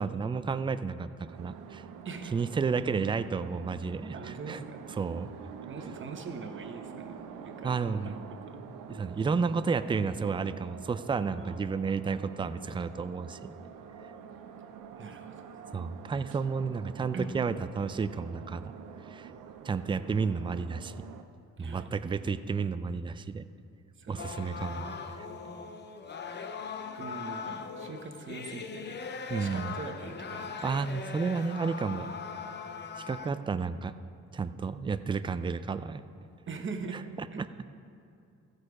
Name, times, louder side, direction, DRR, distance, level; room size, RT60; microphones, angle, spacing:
voice 1, 0.0-1.8 2.3-4.6 5.0-5.3 7.6-8.2 8.9-13.5 15.7-18.7 19.1-19.3 19.6-20.9 21.6-23.5 24.1-25.3 29.3-29.8 30.6-32.1 33.0-33.9 34.3-36.0 37.4-37.5, right 5 dB, 15° right, 12 dB, 0.4 m, -31 dB
sound 1, 1.3-21.2, right 7 dB, 90° right, 0.7 m, -47 dB
voice 2, 2.0-2.4 4.1-4.8 5.7-8.6 11.4-11.6 15.0-15.4 17.1-17.3 21.6-21.9 24.0-24.9 26.9-29.0 29.4-30.6 36.5-37.0 37.3-37.4, right 4 dB, 40° right, 5 dB, 1.1 m, -42 dB
sound 2, 24.2-33.4, left 5 dB, 35° left, 0.7 m, -40 dB
14.5 x 6.5 x 4.8 m, 2.6 s
cardioid pair, 90°, 30 cm